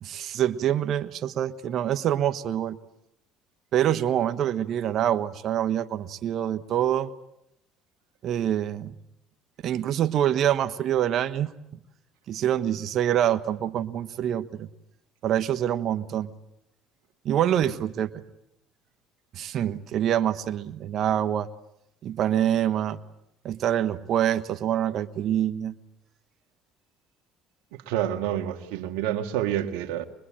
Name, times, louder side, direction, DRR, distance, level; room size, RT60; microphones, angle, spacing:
voice 1, 0.0-2.8 3.7-7.1 8.2-9.0 9.6-11.5 12.3-14.7 15.2-16.3 17.2-18.1 19.3-21.5 22.0-23.0 23.4-25.7, right 10 dB, 60° right, 11 dB, 1.2 m, -25 dB
voice 2, 27.7-30.0, right 11 dB, 85° right, 8 dB, 1.8 m, -28 dB
25.0 x 21.5 x 8.8 m, 0.82 s
supercardioid pair, 80°, 0 cm